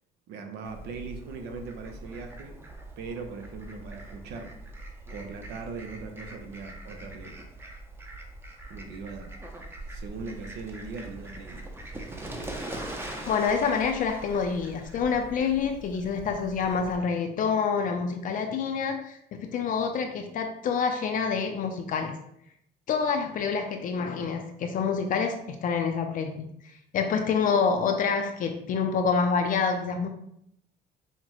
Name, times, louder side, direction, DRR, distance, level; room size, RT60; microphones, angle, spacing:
voice 1, 0.3-2.6 3.0-4.5 5.1-7.4 8.7-9.3 9.9-11.7, right 4 dB, 80° right, 5 dB, 0.7 m, -40 dB
Fowl, 0.6-17.0, right 1 dB, 15° right, 0.6 m, -42 dB
voice 2, 13.3-22.2 22.9-26.5 26.9-30.1, left 5 dB, 55° left, 5 dB, 0.4 m, -27 dB
5.6 x 2.1 x 3.0 m, 0.74 s
cardioid pair, 110°, 17 cm